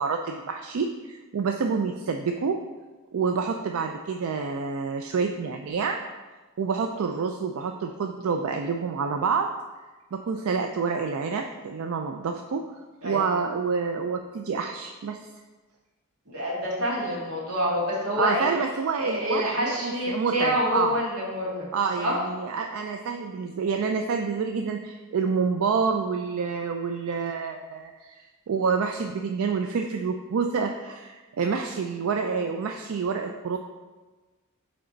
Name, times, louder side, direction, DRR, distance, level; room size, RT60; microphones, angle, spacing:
voice 1, 0.0-2.6 3.1-6.0 6.6-9.5 10.1-12.6 13.0-15.2 18.2-21.0 21.7-33.6, right 5 dB, 70° right, 4 dB, 0.4 m, -28 dB
voice 2, 16.3-18.5 18.9-21.7 22.0-22.2, equal, 90° right, -4 dB, 1.9 m, -27 dB
8.8 x 3.4 x 3.9 m, 1.3 s
head